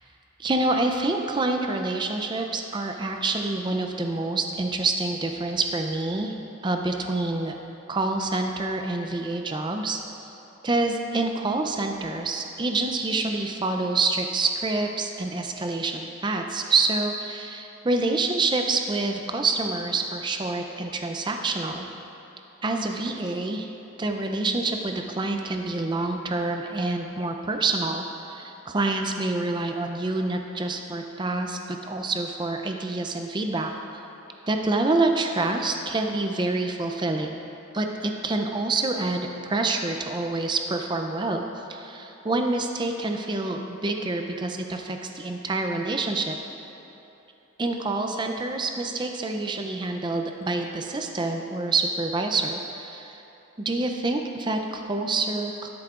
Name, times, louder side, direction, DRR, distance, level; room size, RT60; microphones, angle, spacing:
voice 1, 0.4-6.3 6.6-7.6 7.9-10.0 10.6-21.9 22.6-23.7 24.0-33.7 34.5-37.4 37.7-41.4 41.7-46.3 47.6-53.2 53.6-55.7, right 3 dB, 20° right, 4 dB, 0.5 m, -27 dB
12.5 x 11.0 x 2.5 m, 2.9 s
head